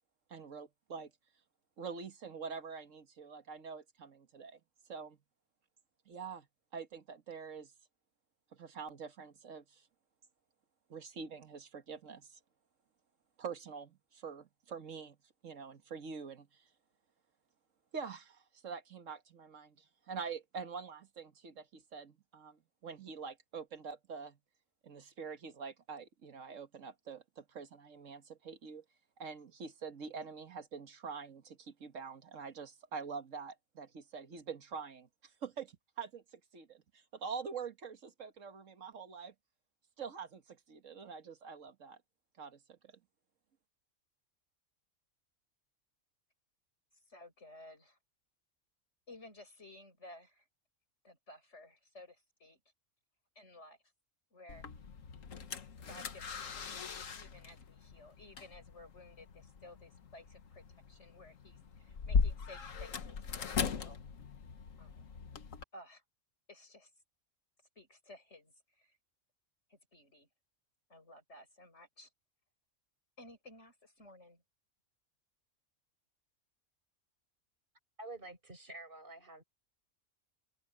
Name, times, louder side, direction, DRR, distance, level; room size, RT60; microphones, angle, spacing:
voice 1, 0.3-1.1 1.8-4.6 4.9-5.2 6.1-6.5 6.7-7.7 8.5-9.9 10.9-12.4 13.4-15.2 15.4-16.6 17.9-24.4 24.8-28.8 29.2-39.3 40.0-42.0 42.4-42.9, right 5 dB, 70° right, 1.8 m, -45 dB
voice 2, 47.1-48.0 49.1-50.5 51.0-52.6 53.4-53.8 54.3-54.7 55.9-64.0 64.8-65.1 65.7-66.0 66.5-66.9 67.8-69.0 69.7-70.3 70.9-72.1 73.2-74.4, left 2 dB, 55° left, 7.1 m, -56 dB
sound 1, 54.5-65.6, left 5 dB, 75° left, 1.6 m, -39 dB
voice 3, 78.0-79.4, right 2 dB, 40° right, 6.4 m, -48 dB
omnidirectional pair, 1.4 m